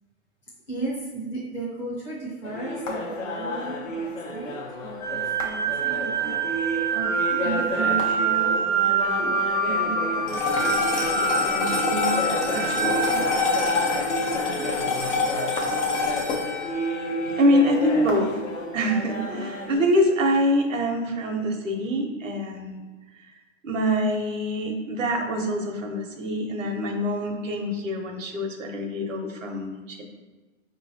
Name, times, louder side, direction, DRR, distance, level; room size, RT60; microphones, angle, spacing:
voice 1, 0.7-6.5 6.9-8.6 8.8-9.3 9.7-13.2, right 3 dB, 5° left, -8 dB, 0.4 m, -35 dB
sound 1, 2.4-19.8, left 1 dB, 90° left, 1.1 m, -32 dB
sound 2, 5.0-14.2, right 4 dB, 35° left, 0.8 m, -26 dB
sound 3, 10.3-18.8, left 3 dB, 70° left, 1.0 m, -27 dB
voice 2, 17.4-18.3 18.7-22.8 23.6-30.0, equal, 90° right, 3 dB, 0.9 m, -25 dB
5.0 x 3.0 x 2.7 m, 1.2 s
hypercardioid pair, 150°, 37 cm